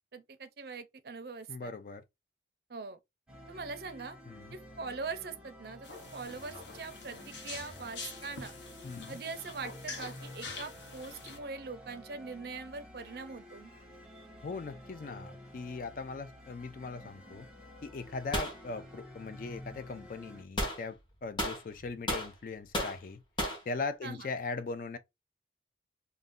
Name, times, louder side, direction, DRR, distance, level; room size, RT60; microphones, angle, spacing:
voice 1, 0.1-1.7 2.7-3.0 3.5-4.2 4.5-8.5 9.1-13.7 24.0-24.3, right 4 dB, 55° right, 0.4 m, -42 dB
voice 2, 1.5-2.0 4.3-4.6 8.8-9.2 14.4-17.5 17.8-23.2 23.7-25.0, left 4 dB, 45° left, 0.3 m, -39 dB
sound 1, 3.3-20.4, equal, 5° right, 0.7 m, -51 dB
sound 2, 5.8-11.4, left 4 dB, 75° left, 0.8 m, -46 dB
sound 3, 18.3-18.6 20.6-20.8 21.4-22.3 22.7-23.0 23.4-23.6, equal, 25° left, 0.8 m, -33 dB
2.5 x 2.1 x 3.5 m
head